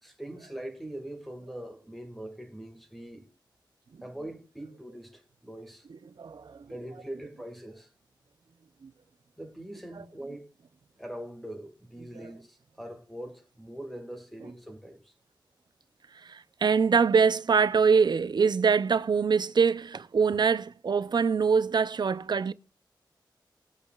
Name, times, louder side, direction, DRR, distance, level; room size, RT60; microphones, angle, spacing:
voice 1, 0.0-3.2 4.0-5.9 6.7-7.9 9.4-10.5 11.0-15.1, right 1 dB, ahead, 2.0 m, -42 dB
voice 2, 5.9-6.7 8.8-8.9 10.0-10.1 16.2-22.5, right 5 dB, 60° right, 0.6 m, -24 dB
20.0 x 8.4 x 2.4 m
wide cardioid pair, 90°, 8 cm